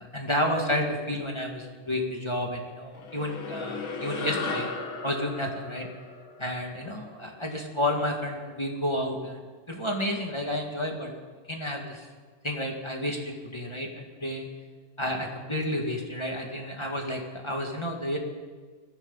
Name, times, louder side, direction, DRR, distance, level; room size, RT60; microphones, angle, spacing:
voice 1, 0.0-4.7 5.0-5.9 6.4-9.4 9.7-11.1 11.5-12.1 12.4-14.5 15.0-18.2, left 1 dB, 15° left, 0 dB, 1.0 m, -31 dB
sound 1, 2.9-7.6, left 3 dB, 45° left, 2.0 m, -36 dB
22.0 x 15.5 x 4.1 m, 1.5 s
omnidirectional pair, 3.7 m